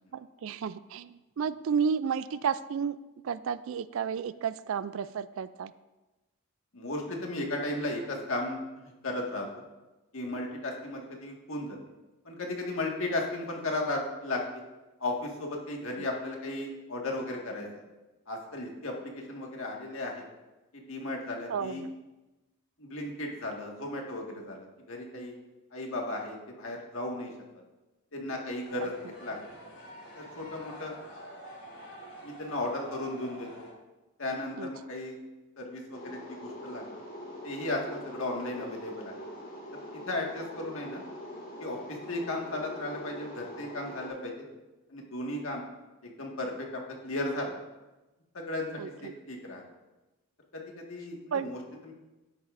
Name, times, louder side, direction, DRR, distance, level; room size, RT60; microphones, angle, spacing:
voice 1, 0.1-3.0 3.2-5.7 16.0-16.1 21.5-21.9 34.5-34.7 48.8-49.1 51.3-51.5, right 6 dB, 65° right, 16 dB, 0.3 m, -32 dB
voice 2, 6.7-9.5 10.1-11.8 12.3-14.4 15.0-17.8 18.3-20.3 20.7-21.8 22.8-25.3 25.7-27.6 28.1-29.4 30.2-30.9 32.2-33.7 34.2-35.2 35.6-37.0 37.4-39.3 39.7-41.0 41.6-44.5 44.9-45.6 46.0-47.6 48.3-49.6 50.5-51.9, left 2 dB, 65° left, 0 dB, 1.8 m, -35 dB
sound 1, 28.6-33.7, right 1 dB, 80° left, 3.0 m, -47 dB
sound 2, 35.9-44.1, left 1 dB, 40° left, 2.0 m, -43 dB
12.5 x 10.0 x 2.6 m, 1.1 s
head